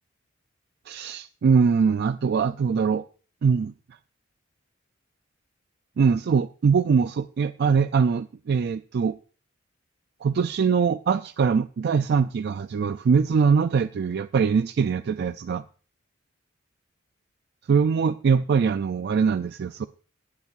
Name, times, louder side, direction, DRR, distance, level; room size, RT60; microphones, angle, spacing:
voice 1, 0.9-3.0 3.4-3.7 6.0-9.1 10.2-15.6 17.7-19.9, right 5 dB, 55° right, 11 dB, 0.3 m, -22 dB
17.5 x 7.3 x 2.5 m, 0.40 s
head